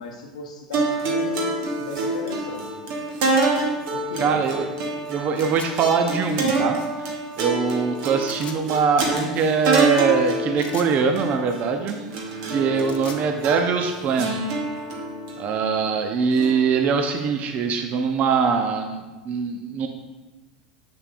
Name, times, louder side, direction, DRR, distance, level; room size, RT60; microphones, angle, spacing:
voice 1, 0.0-1.5 1.8-2.8 3.9-4.4, left 2 dB, 75° left, 2 dB, 0.8 m, -35 dB
sound 1, 0.7-17.2, right 2 dB, 60° right, 1.4 m, -27 dB
voice 2, 4.2-4.6 5.1-7.1 7.4-12.0 12.5-14.4 15.4-19.9, right 5 dB, 40° right, 5 dB, 0.6 m, -22 dB
sound 2, 5.3-5.7 8.2-8.6 10.6-10.9 12.6-13.3, left 7 dB, 35° left, 0.7 m, -40 dB
6.9 x 6.7 x 2.5 m, 1.2 s
figure-of-eight pair, 80°, 4 cm